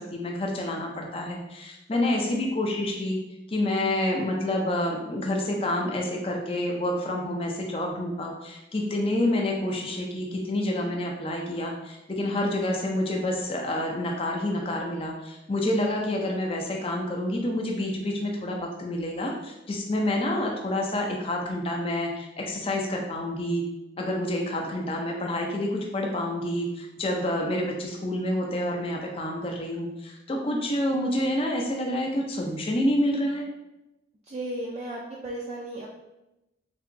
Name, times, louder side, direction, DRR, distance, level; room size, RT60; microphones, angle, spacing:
voice 1, 0.0-3.2 3.5-23.6 24.0-33.5, left 1 dB, 30° left, 0 dB, 0.4 m, -28 dB
voice 2, 1.9-2.4 34.3-35.9, right 1 dB, 35° right, -5 dB, 0.3 m, -35 dB
3.4 x 2.8 x 2.6 m, 0.94 s
head